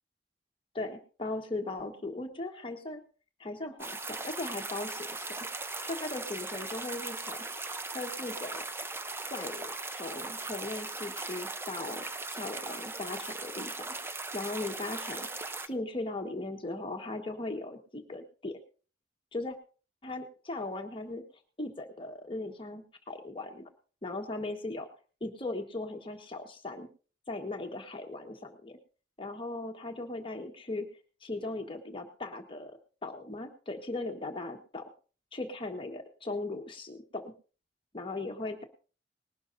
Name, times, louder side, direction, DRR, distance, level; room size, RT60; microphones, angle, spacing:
voice 1, 0.7-3.0 3.4-5.4 5.8-7.4 7.9-8.6 9.3-12.1 12.3-13.8 14.3-15.3 15.7-18.6 19.3-19.6 20.0-21.2 21.6-23.7 24.0-24.9 25.2-26.9 27.3-28.8 29.2-30.9 31.2-34.9 35.3-37.3 37.9-38.6, left 2 dB, 30° left, 4 dB, 1.4 m, -38 dB
sound 1, 3.8-15.7, right 3 dB, 15° right, 0.7 m, -39 dB
20.0 x 12.0 x 2.7 m, 0.37 s
head